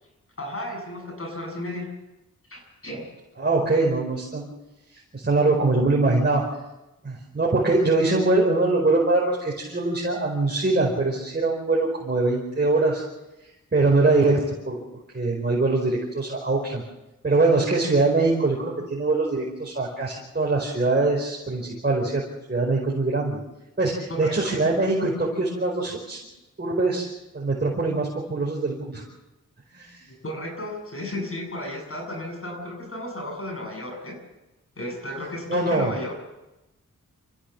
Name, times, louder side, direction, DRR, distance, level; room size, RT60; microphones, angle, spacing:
voice 1, 0.4-1.9 2.5-3.1 24.1-24.6 30.1-34.2 34.8-36.1, left 1 dB, 45° left, 2 dB, 7.8 m, -34 dB
voice 2, 3.4-4.5 5.1-6.4 7.0-13.0 13.7-14.8 15.1-16.8 17.2-22.2 22.5-23.4 23.8-26.2 26.6-27.1 27.3-29.0 29.7-30.0 35.5-35.9, right 3 dB, 30° right, -3 dB, 4.9 m, -23 dB
27.0 x 15.0 x 7.4 m, 0.99 s
wide cardioid pair, 85°, 32 cm